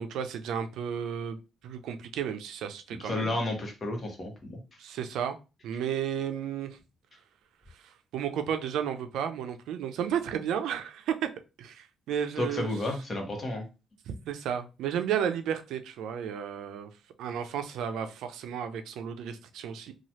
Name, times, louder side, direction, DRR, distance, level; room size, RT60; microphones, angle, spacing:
voice 1, 0.0-1.4 1.6-3.3 4.8-5.4 5.6-6.8 7.8-11.3 11.6-12.7 14.1-16.9 17.2-19.9, right 8 dB, 85° right, 8 dB, 0.4 m, -33 dB
voice 2, 3.0-4.6 12.4-13.6, left 2 dB, 40° left, 2 dB, 1.1 m, -32 dB
3.0 x 2.3 x 2.8 m, 0.29 s
cardioid pair, 90°, 0 cm